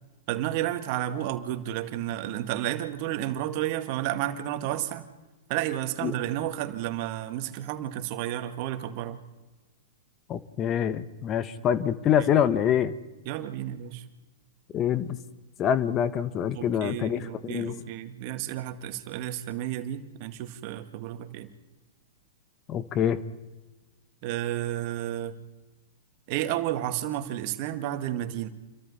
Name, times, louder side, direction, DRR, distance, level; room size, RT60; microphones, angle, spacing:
voice 1, 0.3-5.1 5.5-9.2 13.3-14.0 16.5-21.5 24.2-25.4 26.3-28.5, right 13 dB, 50° right, 8 dB, 2.0 m, -31 dB
voice 2, 10.3-12.9 14.7-15.2 15.6-17.9 22.7-23.2, left 9 dB, 30° left, 14 dB, 1.2 m, -25 dB
29.0 x 23.5 x 4.3 m, 1.2 s
hypercardioid pair, 110°, 0 cm